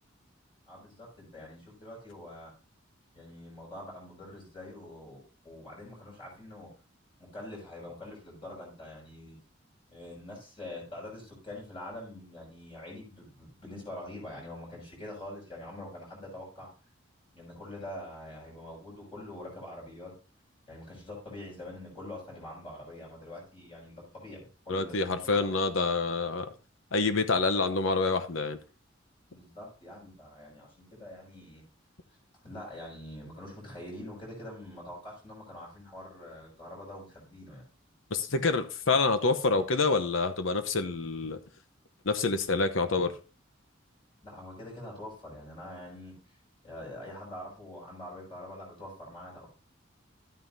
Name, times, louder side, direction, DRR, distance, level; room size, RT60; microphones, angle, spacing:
voice 1, 0.7-2.5 3.1-6.7 7.2-9.4 9.9-16.7 17.3-20.1 20.7-25.6 29.3-31.6 32.4-37.6 44.2-46.4 46.6-49.5, left 1 dB, 25° left, 5.6 m, -45 dB
voice 2, 24.7-26.5 26.9-28.6 38.1-41.4 42.0-43.1, left 3 dB, 75° left, 0.9 m, -27 dB
12.0 x 9.2 x 2.7 m
head